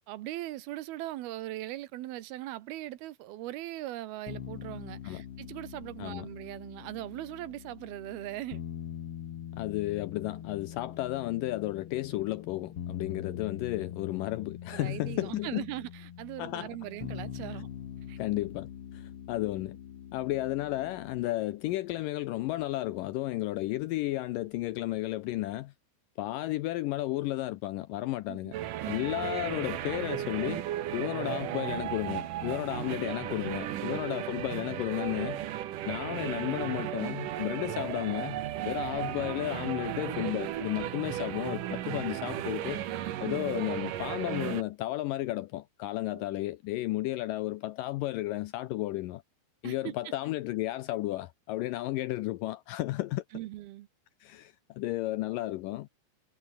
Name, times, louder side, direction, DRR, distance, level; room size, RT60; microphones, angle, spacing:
voice 1, 0.1-8.6 14.7-17.7 18.1-18.2 28.3-28.6 33.4-33.9 41.1-41.4 46.3-46.4 49.6-49.9 53.3-53.9, right 15 dB, 80° right, 2.9 m, -40 dB
sound 1, 4.3-21.3, left 9 dB, 55° left, 1.8 m, -43 dB
voice 2, 9.5-15.7 16.4-16.7 18.2-19.8 20.1-25.7 26.2-28.5 28.9-30.6 30.9-35.4 35.9-42.8 43.2-49.2 49.6-53.2 54.2-55.9, left 17 dB, 80° left, 2.0 m, -33 dB
sound 2, 28.5-44.6, right 12 dB, 65° right, 2.7 m, -35 dB
omnidirectional pair, 4.5 m